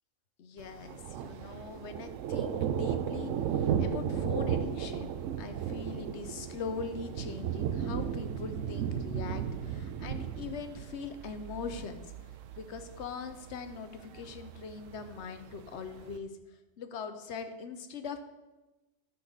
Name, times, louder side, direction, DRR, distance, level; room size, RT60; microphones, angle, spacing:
voice 1, 0.4-12.1 12.6-18.2, left 5 dB, 65° left, 8 dB, 1.0 m, -41 dB
Thunder, 0.6-16.2, right 8 dB, 90° right, 1.0 m, -35 dB
12.5 x 4.4 x 5.4 m, 1.1 s
omnidirectional pair, 1.3 m